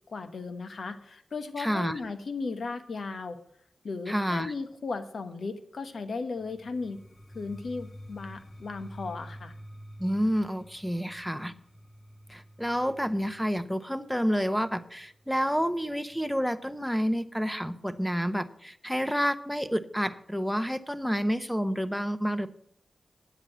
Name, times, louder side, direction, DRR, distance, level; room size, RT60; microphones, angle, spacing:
voice 1, 0.1-3.4 3.8-7.0 7.3-9.5, left 4 dB, 75° left, 9 dB, 1.1 m, -36 dB
voice 2, 1.6-2.0 4.1-4.5 10.0-11.5 12.3-22.5, equal, ahead, 12 dB, 1.0 m, -29 dB
sound 1, 6.4-16.2, equal, 35° left, 2.0 m, -49 dB
9.8 x 8.1 x 7.4 m, 0.72 s
cardioid pair, 45°, 0 cm